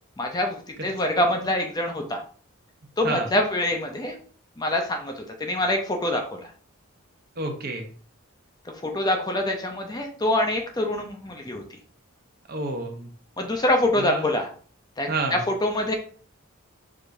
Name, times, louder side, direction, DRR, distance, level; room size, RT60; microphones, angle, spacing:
voice 1, 0.2-2.2 3.0-4.1 4.6-6.5 8.8-11.6 13.4-14.5 15.0-15.9, left 1 dB, 20° left, 3 dB, 0.5 m, -25 dB
voice 2, 7.4-7.9 12.5-13.1 14.0-14.3 15.1-15.4, right 3 dB, 45° right, 3 dB, 0.7 m, -29 dB
4.8 x 3.4 x 2.6 m, 0.43 s
head